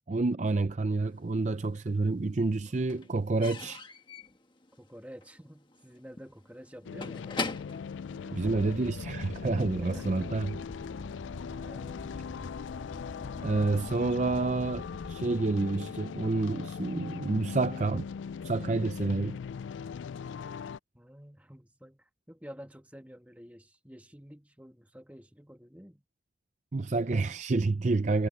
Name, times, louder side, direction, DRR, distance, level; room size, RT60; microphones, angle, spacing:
voice 1, 0.1-3.8 8.3-10.5 13.4-18.1 18.4-19.4 26.7-28.3, right 3 dB, 40° right, 0.5 m, -29 dB
Slam / Squeak / Wood, 1.2-2.0 2.2-9.0, left 3 dB, 25° left, 1.5 m, -42 dB
voice 2, 4.8-7.3 8.1-8.6 9.7-10.5 11.5-12.3 20.9-26.0, equal, 10° right, 1.8 m, -50 dB
sound 1, 6.9-20.8, left 6 dB, 90° left, 0.3 m, -40 dB
sound 2, 8.3-15.3, left 1 dB, 45° left, 0.9 m, -45 dB
head